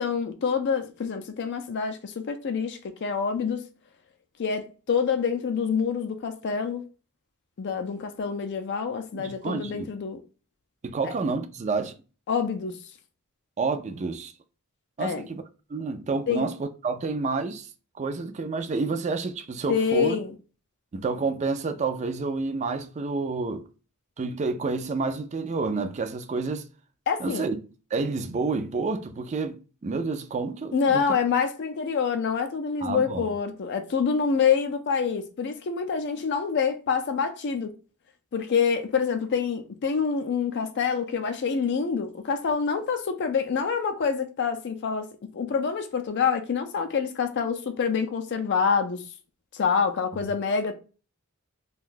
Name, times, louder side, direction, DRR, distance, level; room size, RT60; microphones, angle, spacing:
voice 1, 0.0-3.6 4.4-6.8 7.6-10.2 11.0-11.1 12.3-12.8 15.0-15.2 16.3-16.5 19.7-20.3 27.1-27.5 30.7-37.7 38.3-49.0 49.5-50.7, left 6 dB, 50° left, 0.4 m, -26 dB
voice 2, 9.1-9.9 10.8-11.9 13.6-14.3 15.0-15.4 15.7-17.7 18.0-20.2 20.9-23.7 24.2-26.7 27.2-27.6 27.9-31.1 32.8-33.3, right 4 dB, 30° right, 0.4 m, -29 dB
2.5 x 2.2 x 3.7 m
head